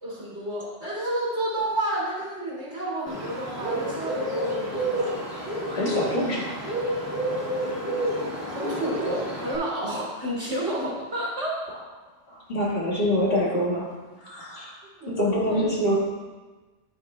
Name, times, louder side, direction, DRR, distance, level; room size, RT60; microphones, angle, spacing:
voice 1, 0.0-5.2 8.5-11.6 15.0-15.2 15.5-15.7, right 1 dB, 75° right, -5 dB, 2.8 m, -30 dB
Bird, 3.1-9.6, right 1 dB, 15° right, 2.4 m, -30 dB
voice 2, 5.7-6.5 12.3-13.9 14.2-14.8 15.1-16.0, equal, 55° left, -6 dB, 2.1 m, -25 dB
9.1 x 9.1 x 2.2 m, 1.2 s
omnidirectional pair, 1.2 m